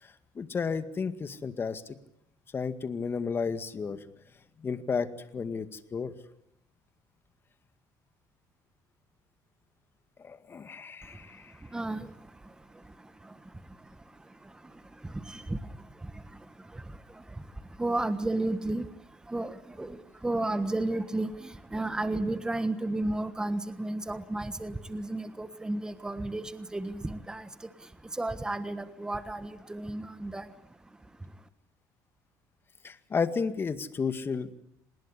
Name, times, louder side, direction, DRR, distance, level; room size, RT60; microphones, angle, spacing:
voice 1, 0.0-2.0 2.5-4.0 4.6-5.1 5.3-6.1 10.2-11.5 32.8-34.5, left 5 dB, 30° left, 11 dB, 2.0 m, -32 dB
voice 2, 11.7-12.1 15.3-15.6 17.8-18.9 19.3-20.0 20.2-27.5 28.2-30.4, right 2 dB, 10° right, 11 dB, 1.4 m, -32 dB
27.5 x 20.0 x 10.0 m, 0.79 s
cardioid pair, 120°, 8 cm